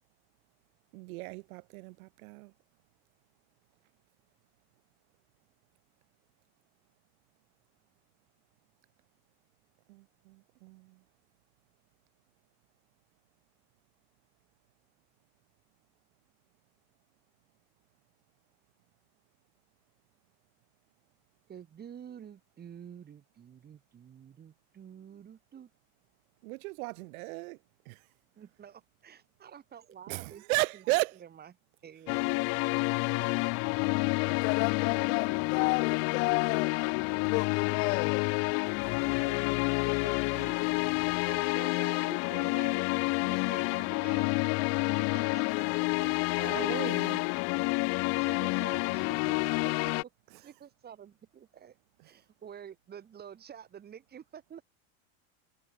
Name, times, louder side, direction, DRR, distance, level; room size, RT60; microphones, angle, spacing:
voice 1, 0.9-2.5 9.9-10.4 10.6-10.9 26.4-27.6 27.9-28.0 30.1-31.2 46.0-47.2, right 24 dB, 65° right, 0.8 m, -35 dB
voice 2, 21.5-25.7 28.4-31.5 31.8-33.4 37.1-37.2 37.9-38.0 39.1-40.8 41.3-44.3 45.1-45.7 47.9-49.9 50.3-51.7 52.0-54.6, right 8 dB, 20° right, 3.2 m, -49 dB
sound 1, 32.1-50.0, left 30 dB, 35° left, 0.5 m, -29 dB
voice 3, 34.2-36.8 37.2-38.4 38.8-39.0, left 27 dB, 55° left, 0.9 m, -33 dB
supercardioid pair, 165°, 47 cm